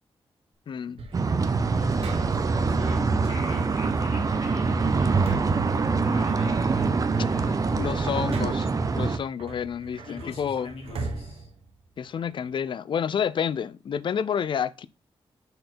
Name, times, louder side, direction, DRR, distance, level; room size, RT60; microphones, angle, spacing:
voice 1, 0.7-1.0 7.8-8.7 8.9-10.7 12.0-14.9, left 8 dB, 55° left, 0.5 m, -29 dB
sound 1, 1.0-2.6 4.1-6.5 6.9-8.8 9.4-12.4, right 3 dB, 75° right, 1.3 m, -40 dB
sound 2, 1.1-9.2, right 4 dB, 35° right, 0.7 m, -24 dB
voice 2, 1.7-8.0 10.0-11.5, left 2 dB, 80° left, 3.3 m, -43 dB
6.4 x 4.5 x 4.3 m
wide cardioid pair, 120°, 10 cm